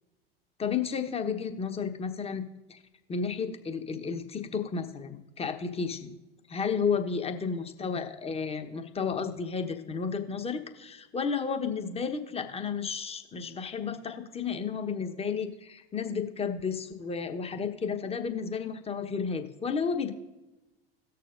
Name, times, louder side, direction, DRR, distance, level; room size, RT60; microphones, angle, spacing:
voice 1, 0.6-2.4 2.7-2.8 3.1-6.1 6.5-20.1, left 6 dB, 20° left, 6 dB, 1.1 m, -32 dB
18.0 x 6.8 x 2.6 m, 1.1 s
figure-of-eight pair, 80°, 30 cm